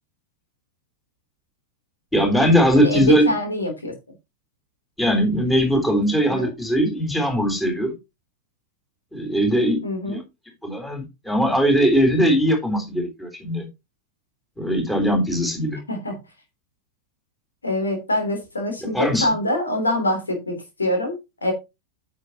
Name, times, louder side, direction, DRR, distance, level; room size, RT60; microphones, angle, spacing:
voice 1, 2.1-3.3 5.0-8.0 9.1-9.8 10.1-10.2 10.6-13.7 14.6-15.8 18.9-19.3, equal, 5° left, 3.7 m, -20 dB
voice 2, 2.7-3.9 6.2-6.5 9.8-10.2 15.9-16.2 17.6-21.5, left 1 dB, 75° left, 3.0 m, -25 dB
9.5 x 7.5 x 2.8 m
figure-of-eight pair, 90°, 0 cm